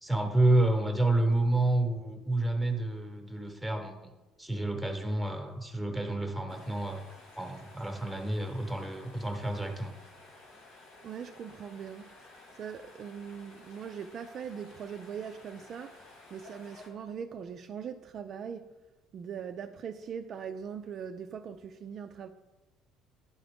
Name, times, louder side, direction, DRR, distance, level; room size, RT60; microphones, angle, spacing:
voice 1, 0.0-4.1 4.4-7.0 7.4-9.9, right 2 dB, ahead, 1.0 m, -29 dB
sound 1, 6.5-16.9, left 2 dB, 80° left, 2.0 m, -54 dB
voice 2, 11.0-12.2 12.5-18.7 19.1-22.3, right 7 dB, 45° right, 0.3 m, -41 dB
11.0 x 3.8 x 3.5 m
cardioid pair, 130°, 0 cm